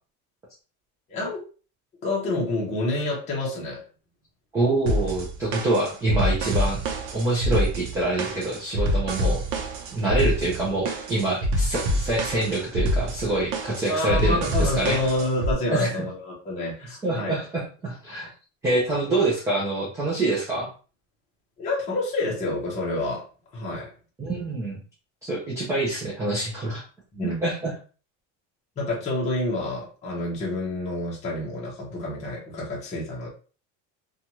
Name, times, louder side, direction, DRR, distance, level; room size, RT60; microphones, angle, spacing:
voice 1, 1.1-1.4 2.0-3.8 13.9-17.4 21.6-23.2 23.5-23.9 27.1-27.4 28.8-33.3, left 2 dB, 20° left, -4 dB, 0.7 m, -28 dB
voice 2, 4.5-6.8 7.1-9.4 9.9-15.0 15.7-15.9 17.0-18.3 18.6-20.7 24.2-24.8 25.2-26.8 27.4-27.7, right 2 dB, 10° right, -5 dB, 0.4 m, -26 dB
sound 1, 4.9-15.5, equal, 75° right, 0.7 m, -26 dB
2.6 x 2.3 x 2.9 m, 0.37 s
cardioid pair, 175°, 34 cm